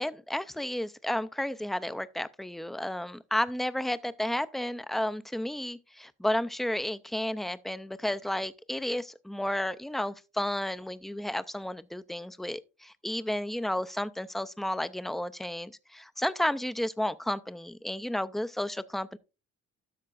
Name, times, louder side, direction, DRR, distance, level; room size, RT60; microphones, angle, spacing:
voice 1, 0.0-19.2, left 1 dB, ahead, 0.4 m, -32 dB
12.5 x 6.6 x 2.4 m
cardioid pair, 90°, 30 cm